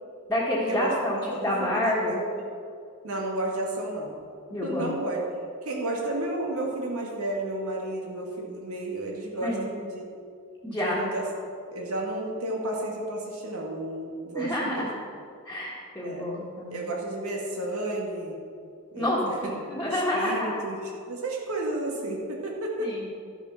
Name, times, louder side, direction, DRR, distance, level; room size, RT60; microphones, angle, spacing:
voice 1, 0.3-2.2 4.5-4.9 9.4-9.7 10.6-11.3 14.3-14.9 15.4-16.9 19.0-20.6 22.8-23.1, left 1 dB, 10° left, -7 dB, 1.6 m, -28 dB
voice 2, 1.2-2.3 3.0-4.2 4.6-5.2 5.6-10.2 10.7-11.2 11.7-14.9 16.0-16.3 16.7-18.4 18.9-19.3 19.9-22.9, right 1 dB, 90° right, -1 dB, 2.3 m, -32 dB
12.5 x 7.2 x 6.0 m, 2.3 s
head